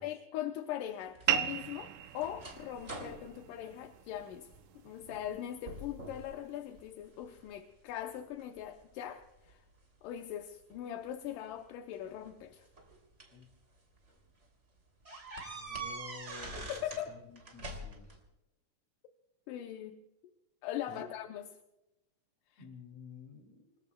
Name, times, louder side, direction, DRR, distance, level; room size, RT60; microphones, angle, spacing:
voice 1, 0.0-4.5 4.8-9.6 10.0-12.7 16.6-17.1 19.5-20.0 20.6-21.5 22.5-22.6, left 11 dB, 80° left, 6 dB, 2.4 m, -41 dB
sound 1, 1.2-4.6 5.0-5.4 5.7-6.3 6.8-7.5 8.1-9.5 10.7-10.8 12.0-13.4 14.0-14.1 14.4-14.5 15.1-17.1 17.4-18.2, right 2 dB, 20° right, 2.9 m, -45 dB
sound 2, 1.3-6.3, right 10 dB, 75° right, 1.8 m, -38 dB
voice 2, 15.5-16.7 17.1-18.2 20.9-21.1 22.6-23.7, left 5 dB, 50° left, 3 dB, 3.8 m, -51 dB
28.5 x 21.0 x 2.3 m, 0.95 s
omnidirectional pair, 3.8 m